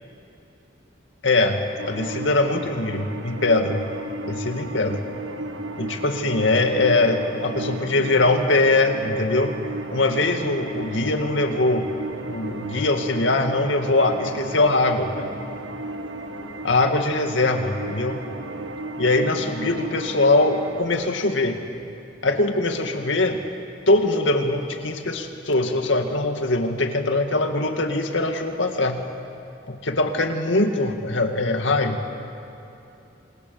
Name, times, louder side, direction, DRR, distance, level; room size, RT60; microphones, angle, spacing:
voice 1, 1.2-1.6 1.9-3.8 4.2-5.0 5.8-9.5 9.9-11.9 12.2-15.4 16.6-18.2 19.0-21.6 22.2-23.4 23.9-29.0 29.7-32.0, left 2 dB, 75° left, 5 dB, 2.2 m, -22 dB
sound 1, 1.8-20.8, right 2 dB, 75° right, 1.5 m, -34 dB
28.5 x 26.0 x 7.2 m, 2.7 s
head